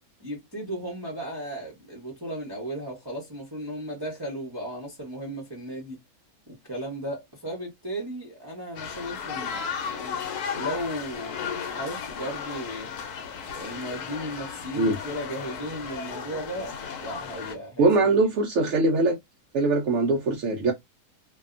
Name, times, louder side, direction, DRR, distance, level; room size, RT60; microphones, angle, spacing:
voice 1, 0.2-6.0 6.5-10.2 10.5-12.9 13.5-18.2, right 1 dB, 20° right, 0.7 m, -35 dB
sound 1, 8.8-17.6, left 7 dB, 85° left, 1.2 m, -35 dB
voice 2, 17.8-19.2 19.5-20.7, right 3 dB, 65° right, 0.8 m, -22 dB
2.7 x 2.3 x 2.4 m
omnidirectional pair, 1.6 m